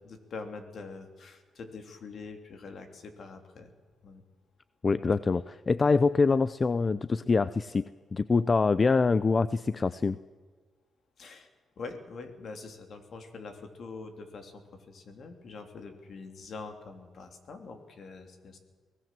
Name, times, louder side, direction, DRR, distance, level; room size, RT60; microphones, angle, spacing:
voice 1, 0.0-3.7 4.0-4.2 11.2-11.5 11.8-18.6, left 4 dB, 60° left, 7 dB, 3.3 m, -44 dB
voice 2, 4.8-7.8 8.1-10.2, left 4 dB, 35° left, 16 dB, 0.6 m, -25 dB
23.5 x 18.0 x 7.7 m, 1.5 s
cardioid pair, 90°, 0 cm